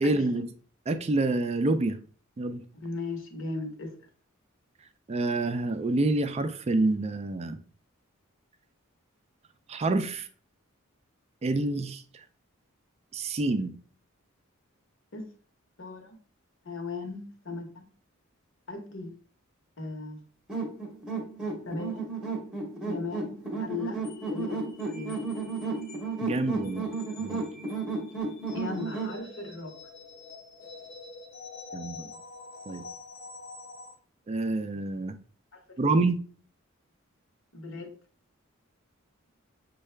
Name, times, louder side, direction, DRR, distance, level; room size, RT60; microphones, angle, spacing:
voice 1, 0.0-0.5 0.9-2.0 2.4-2.6 5.1-7.6 9.7-10.3 11.4-12.0 13.1-13.7 26.2-26.9 27.2-27.4 31.7-32.1 32.7-32.8 34.3-35.2 35.8-36.2, right 2 dB, 30° right, 0.4 m, -27 dB
voice 2, 2.7-4.0 15.1-15.3 15.8-16.2 16.6-17.8 18.7-19.2 19.8-20.2 21.7-22.1 22.8-24.1 24.3-25.2 27.5-27.6 28.1-28.2 28.5-29.7 35.5-35.9 37.5-37.9, left 3 dB, 65° left, 1.0 m, -37 dB
sound 1, 20.5-29.2, right 3 dB, 5° right, 0.8 m, -33 dB
sound 2, 24.0-33.9, left 3 dB, 45° left, 0.7 m, -47 dB
6.3 x 2.3 x 3.2 m
head